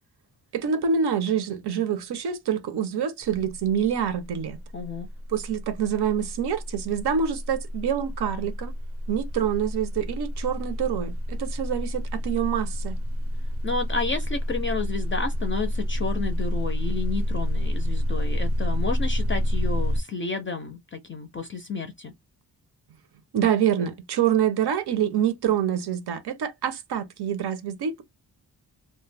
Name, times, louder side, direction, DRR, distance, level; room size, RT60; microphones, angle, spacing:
voice 1, 0.5-4.6 5.3-8.7 9.1-13.0 23.3-28.0, right 8 dB, 90° right, 0.7 m, -26 dB
sound 1, 3.3-3.6 3.9-20.0, equal, 40° right, 0.5 m, -28 dB
voice 2, 4.7-5.1 13.6-22.1, left 4 dB, 35° left, 0.4 m, -31 dB
2.3 x 2.1 x 3.2 m
wide cardioid pair, 170°, 38 cm